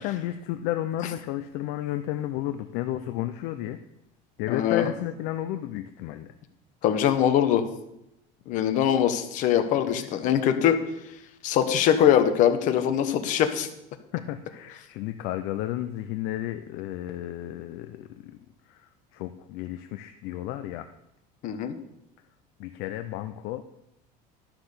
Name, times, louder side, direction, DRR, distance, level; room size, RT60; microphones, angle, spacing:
voice 1, 0.0-3.8 4.4-6.3 9.9-10.1 14.1-18.4 18.7-20.9 22.6-23.6, left 13 dB, 60° left, 9 dB, 0.6 m, -32 dB
voice 2, 4.5-4.9 6.8-7.6 8.5-10.8 11.4-13.7 21.4-21.7, left 9 dB, 45° left, 8 dB, 1.1 m, -22 dB
11.5 x 6.0 x 6.8 m, 0.84 s
cardioid pair, 165°, 18 cm